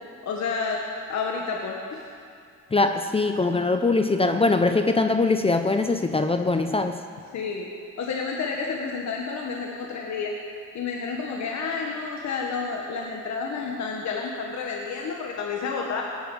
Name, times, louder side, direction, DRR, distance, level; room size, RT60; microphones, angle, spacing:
voice 1, 0.2-0.8 1.1-2.1 7.3-7.7 8.0-10.3 10.7-16.0, left 5 dB, 65° left, 0 dB, 1.7 m, -30 dB
voice 2, 2.7-7.0, left 3 dB, 20° left, 7 dB, 0.7 m, -22 dB
17.5 x 9.6 x 7.3 m, 2.4 s
cardioid pair, 90°, 30 cm